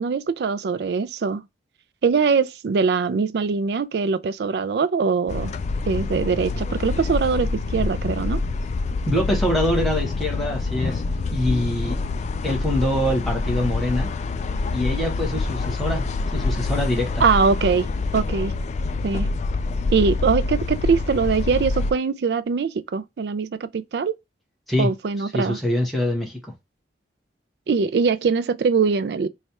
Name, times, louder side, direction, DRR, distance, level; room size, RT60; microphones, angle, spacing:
voice 1, 0.0-1.5 2.0-5.5 5.9-8.4 17.2-17.9 18.1-18.5 19.0-19.3 19.9-24.1 24.8-25.6 27.7-29.3, right 5 dB, 60° right, 0.3 m, -22 dB
sound 1, 5.3-21.9, left 3 dB, 40° left, 0.3 m, -26 dB
voice 2, 9.0-11.0 11.3-12.0 12.4-14.1 14.7-17.2 24.7-24.9 25.2-26.5, left 1 dB, ahead, 1.1 m, -24 dB
3.1 x 2.4 x 4.1 m
head